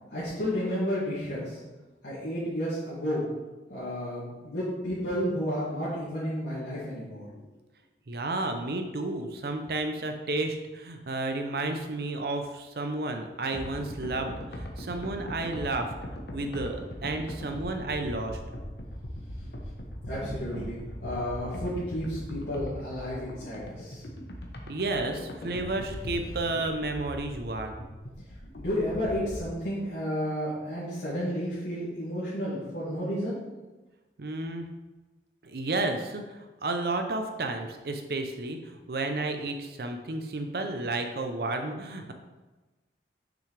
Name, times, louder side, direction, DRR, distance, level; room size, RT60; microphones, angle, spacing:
voice 1, 0.1-1.6 2.0-3.2 3.7-7.3 20.1-24.0 28.6-33.3, equal, 85° left, -11 dB, 2.3 m, -32 dB
voice 2, 8.1-15.9 16.3-18.4 24.7-27.8 34.2-34.7 35.4-42.1, right 2 dB, 60° right, 5 dB, 0.6 m, -32 dB
sound 1, 13.5-29.5, equal, 65° left, 1.0 m, -40 dB
6.7 x 6.1 x 3.3 m, 1.2 s
head